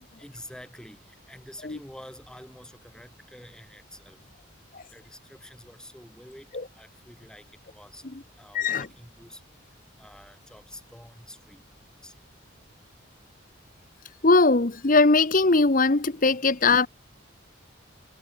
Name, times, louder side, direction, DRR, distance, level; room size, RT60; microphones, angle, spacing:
voice 1, 0.2-4.2 4.9-6.5 6.7-8.0 8.4-9.4 10.0-11.6 12.0-12.2, left 1 dB, 5° left, 7.9 m, -47 dB
voice 2, 8.5-8.9 14.2-16.9, left 3 dB, 40° left, 1.0 m, -20 dB
head